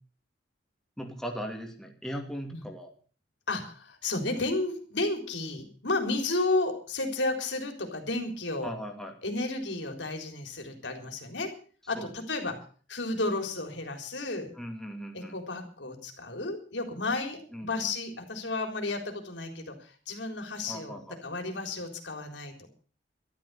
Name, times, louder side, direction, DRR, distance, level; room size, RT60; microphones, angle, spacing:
voice 1, 1.0-2.9 8.6-9.2 12.0-12.1 14.5-15.3 17.5-17.9 20.7-21.2, equal, 5° left, 2 dB, 2.5 m, -38 dB
voice 2, 3.5-8.7 9.2-11.5 11.9-12.6 12.9-14.5 15.1-22.5, left 2 dB, 85° left, 5 dB, 3.9 m, -32 dB
13.0 x 13.0 x 7.0 m, 0.42 s
head